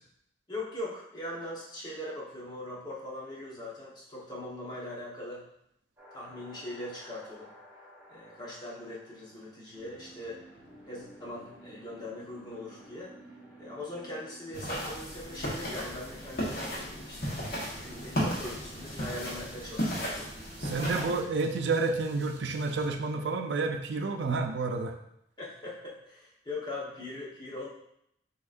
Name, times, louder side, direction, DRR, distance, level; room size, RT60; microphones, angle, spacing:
voice 1, 0.5-5.4 6.1-7.5 8.1-10.4 10.9-13.1 13.6-20.1 20.8-21.1 25.4-27.7, left 1 dB, 25° left, -5 dB, 1.1 m, -41 dB
sound 1, 6.0-21.4, right 1 dB, 10° right, 1.6 m, -54 dB
sound 2, 14.5-21.2, equal, 55° left, 1.3 m, -35 dB
sound 3, 17.7-22.9, right 1 dB, 40° right, 0.9 m, -52 dB
voice 2, 20.6-25.0, right 3 dB, 80° right, 5 dB, 0.5 m, -30 dB
6.2 x 3.0 x 2.5 m, 0.77 s
head